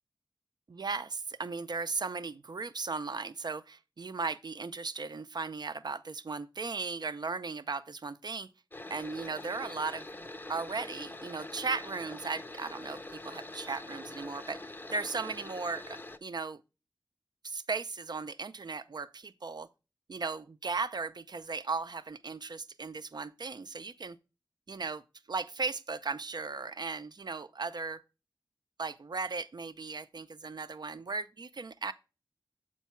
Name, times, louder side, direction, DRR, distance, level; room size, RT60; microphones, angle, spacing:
voice 1, 0.7-8.5 8.9-14.6 14.9-16.6 17.4-19.7 20.1-24.2 24.7-25.0 25.3-28.0 28.8-31.9, right 4 dB, 60° right, 0.5 m, -37 dB
sound 1, 8.7-16.2, left 2 dB, 25° left, 0.5 m, -44 dB
7.3 x 4.5 x 4.4 m
wide cardioid pair, 65°, 8 cm